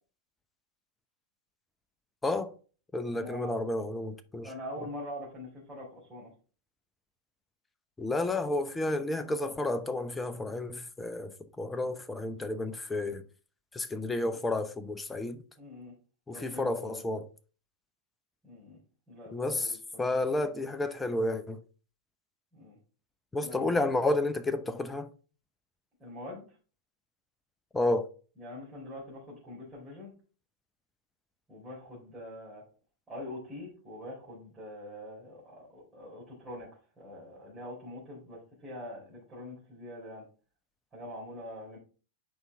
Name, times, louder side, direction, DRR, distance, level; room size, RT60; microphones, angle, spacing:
voice 1, 2.2-2.5 2.9-4.5 8.0-13.2 13.7-15.4 16.3-17.3 19.3-21.6 23.3-25.1 27.7-28.1, left 2 dB, 10° left, 0.8 m, -31 dB
voice 2, 3.1-3.6 4.4-6.3 15.6-15.9 16.3-17.0 18.4-18.8 19.1-20.1 22.5-22.8 23.4-23.9 26.0-26.6 28.4-30.1 31.5-32.7 33.1-36.7 37.0-40.2 40.9-41.8, left 1 dB, 15° right, 3.7 m, -44 dB
8.7 x 5.4 x 3.5 m
figure-of-eight pair, 95°, 0 cm